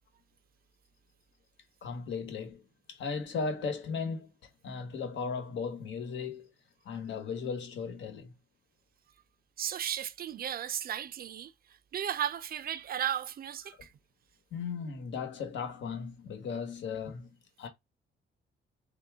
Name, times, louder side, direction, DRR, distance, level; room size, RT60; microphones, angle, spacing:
voice 1, 1.8-2.6 2.9-4.3 4.6-6.5 6.8-8.3 13.7-13.8 14.5-17.3 17.6-17.7, left 5 dB, 70° left, 1.2 m, -36 dB
voice 2, 9.6-11.5 11.9-13.9, right 10 dB, 50° right, 0.5 m, -34 dB
3.5 x 2.7 x 3.5 m
cardioid pair, 90°, 20 cm